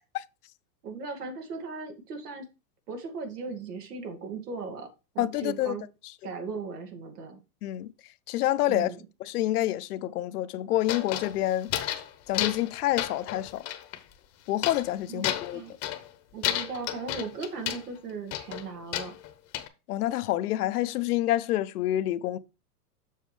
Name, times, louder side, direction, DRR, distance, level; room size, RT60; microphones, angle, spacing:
voice 1, 0.8-2.4 2.9-4.9 5.1-5.8 6.2-7.4 8.7-9.0 15.1-15.7 16.3-19.1, right 4 dB, 80° right, 2.3 m, -37 dB
voice 2, 5.2-5.7 7.6-7.9 8.3-8.9 9.2-11.7 12.3-13.7 14.5-15.6 19.9-22.4, left 14 dB, 70° left, 0.7 m, -27 dB
sound 1, 10.8-12.1 12.3-12.7 13.0-14.0 14.6-14.9 15.2-16.1 16.4-17.9 18.3-19.7, left 12 dB, 30° left, 0.9 m, -32 dB
7.3 x 6.3 x 3.3 m
hypercardioid pair, 130°, 47 cm